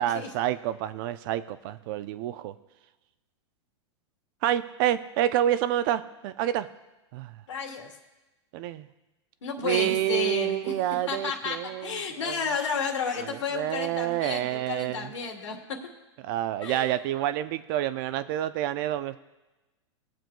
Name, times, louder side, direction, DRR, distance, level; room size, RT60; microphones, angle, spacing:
voice 1, 0.0-2.5 4.4-6.7 7.1-7.3 8.5-8.9 9.6-12.4 13.3-15.1 16.2-19.2, right 12 dB, 50° right, 13 dB, 0.6 m, -28 dB
voice 2, 7.5-7.9 9.4-10.8 11.1-15.8 16.6-17.0, left 5 dB, 90° left, 0 dB, 2.1 m, -32 dB
20.0 x 7.5 x 2.3 m, 1.1 s
hypercardioid pair, 130°, 15 cm